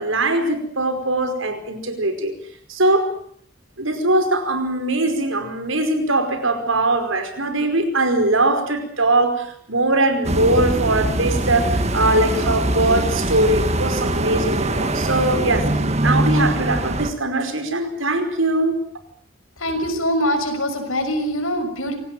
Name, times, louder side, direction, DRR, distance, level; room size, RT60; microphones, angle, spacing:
voice 1, 0.0-2.3 2.7-3.1 3.8-15.7 16.0-18.8, right 2 dB, 75° right, 8 dB, 5.1 m, -21 dB
sound 1, 10.2-17.1, right 1 dB, 30° right, 1.9 m, -22 dB
voice 2, 19.6-21.9, equal, 90° left, 7 dB, 6.1 m, -23 dB
26.5 x 18.5 x 9.2 m, 0.64 s
head